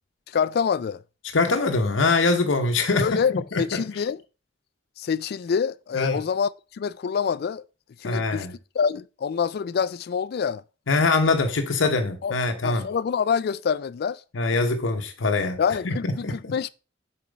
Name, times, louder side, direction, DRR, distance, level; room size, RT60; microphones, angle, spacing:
voice 1, 0.3-1.0 3.0-4.2 5.0-7.6 8.0-8.5 8.7-10.6 12.2-12.4 12.6-14.2 15.6-16.7, left 6 dB, 55° left, 0.3 m, -26 dB
voice 2, 1.3-3.1 3.5-3.8 5.9-6.2 8.0-8.5 10.9-12.9 14.3-15.6 15.8-16.5, left 3 dB, 85° left, 0.8 m, -23 dB
7.0 x 4.4 x 5.1 m
head